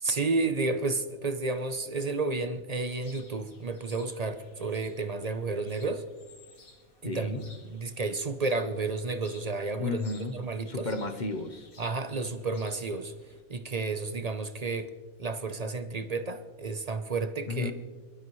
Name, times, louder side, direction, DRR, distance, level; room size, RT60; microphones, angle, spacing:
voice 1, 0.0-6.0 7.0-10.0 10.3-10.9 11.8-13.1 13.5-14.9 15.2-17.7, right 3 dB, 45° right, 9 dB, 0.5 m, -31 dB
sound 1, 2.9-13.4, left 3 dB, 75° left, 2.3 m, -56 dB
voice 2, 7.0-7.4 9.8-10.4 10.7-11.7 17.5-17.7, left 3 dB, 40° left, 8 dB, 0.9 m, -33 dB
24.0 x 12.0 x 3.1 m, 1.3 s
omnidirectional pair, 1.5 m